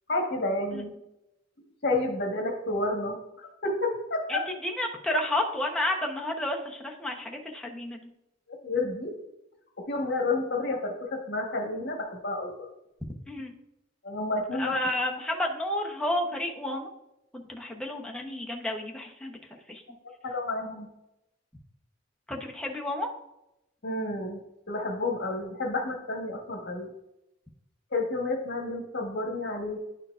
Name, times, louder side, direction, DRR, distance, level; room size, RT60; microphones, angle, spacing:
voice 1, 0.1-0.9 1.8-3.2 3.4-4.5 8.6-9.1 9.9-12.5 14.0-14.8 20.2-20.9 23.8-24.4 24.7-26.9 27.9-29.8, left 2 dB, 60° left, 2 dB, 1.3 m, -30 dB
voice 2, 4.3-8.1 13.3-13.5 14.6-16.9 17.3-19.4 19.7-19.8 22.3-23.1, left 1 dB, 5° left, 0 dB, 0.8 m, -31 dB
11.0 x 4.5 x 2.4 m, 0.88 s
head